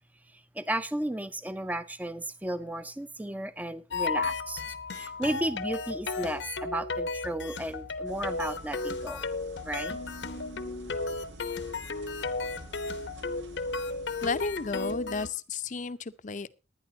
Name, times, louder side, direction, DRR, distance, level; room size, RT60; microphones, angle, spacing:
voice 1, 0.5-4.6 4.9-9.2 9.6-10.0, right 1 dB, 10° right, 0.6 m, -34 dB
sound 1, 3.9-15.3, left 3 dB, 85° left, 0.9 m, -34 dB
sound 2, 8.1-15.2, right 2 dB, 90° right, 1.4 m, -50 dB
voice 2, 14.2-16.5, left 4 dB, 45° left, 0.6 m, -33 dB
22.0 x 9.6 x 2.8 m
head